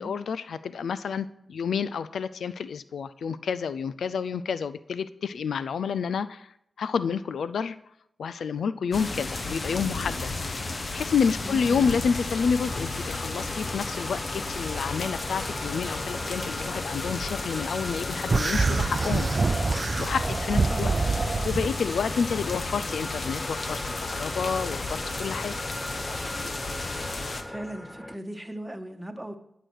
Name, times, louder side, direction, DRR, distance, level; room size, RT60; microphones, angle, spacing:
voice 1, 0.0-6.5 6.8-7.8 8.2-19.3 20.0-20.9 21.4-25.6, left 6 dB, 80° left, 15 dB, 0.4 m, -29 dB
sound 1, 8.9-27.4, left 3 dB, 50° left, 1.3 m, -33 dB
sound 2, 11.4-28.2, left 1 dB, 15° left, 0.7 m, -39 dB
voice 2, 11.4-11.9 20.5-21.1 27.5-29.4, right 1 dB, 15° right, 6 dB, 1.5 m, -37 dB
sound 3, 18.3-21.7, right 3 dB, 50° right, 0.5 m, -25 dB
11.5 x 6.1 x 6.4 m, 0.75 s
cardioid pair, 45°, 0 cm